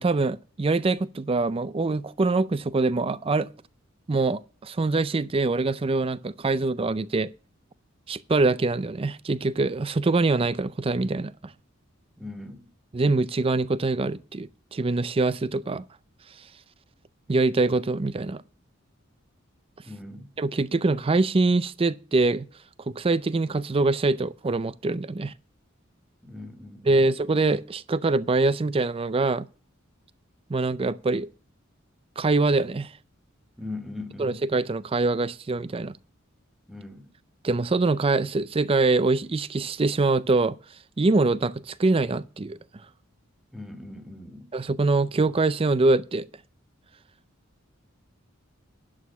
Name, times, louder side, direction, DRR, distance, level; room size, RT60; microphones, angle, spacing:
voice 1, 0.0-3.5 4.1-7.3 8.1-11.5 12.9-15.8 17.3-18.4 20.4-22.5 23.0-25.3 26.8-29.5 30.5-31.3 32.2-32.9 34.2-36.0 37.4-40.6 41.0-42.6 44.5-46.3, right 3 dB, 25° right, 0.4 m, -24 dB
voice 2, 12.2-12.6 19.8-20.3 26.2-27.0 33.6-34.4 36.7-37.0 43.5-44.5, left 2 dB, ahead, 1.8 m, -39 dB
11.5 x 6.4 x 6.0 m
head